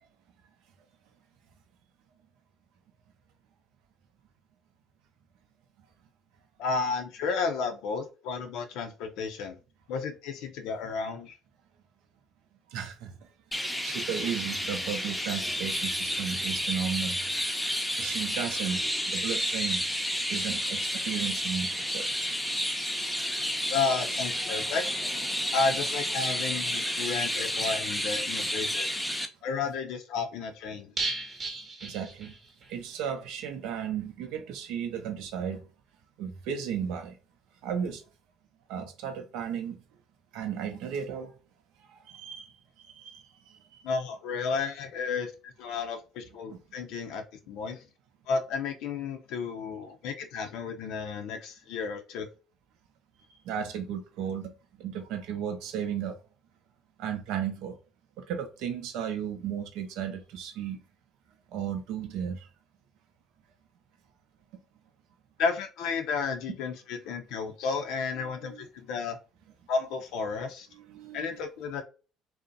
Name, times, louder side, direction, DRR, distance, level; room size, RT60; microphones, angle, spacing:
voice 1, 6.6-9.6 9.9-11.4 23.7-24.9 25.5-28.9 29.4-30.9 43.8-47.8 48.3-52.3 65.4-69.2 69.7-70.7 71.1-71.8, left 5 dB, 70° left, 0.4 m, -32 dB
voice 2, 12.7-13.1 13.5-17.2 18.0-18.8 19.1-19.8 20.3-20.8 21.0-21.7 21.9-22.1 31.8-32.3 32.7-35.6 36.2-37.1 37.6-38.0 38.7-39.8 40.3-41.3 42.1-42.5 43.0-43.2 53.5-54.5 54.8-56.2 57.0-57.7 58.3-60.8 61.5-62.5 70.9-71.4, right 8 dB, 70° right, 0.6 m, -34 dB
Chirp tweet, 13.5-29.3, equal, 5° left, 0.6 m, -31 dB
sound 1, 31.0-32.8 33.0-33.1 33.5-33.6, right 3 dB, 40° right, 0.8 m, -35 dB
2.6 x 2.0 x 2.5 m
hypercardioid pair, 65°, 0 cm